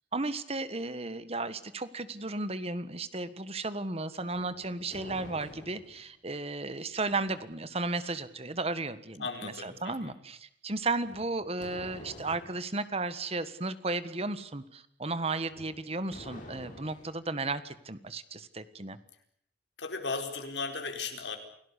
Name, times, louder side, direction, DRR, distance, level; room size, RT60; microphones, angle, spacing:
voice 1, 0.1-19.0, right 3 dB, 35° right, 13 dB, 1.6 m, -34 dB
sound 1, 4.3-6.1 11.0-12.6 15.5-17.2, left 1 dB, 45° left, 7.1 m, -48 dB
voice 2, 9.2-10.1 19.8-21.4, left 4 dB, 90° left, 5 dB, 4.7 m, -36 dB
29.0 x 18.0 x 8.3 m, 0.68 s
head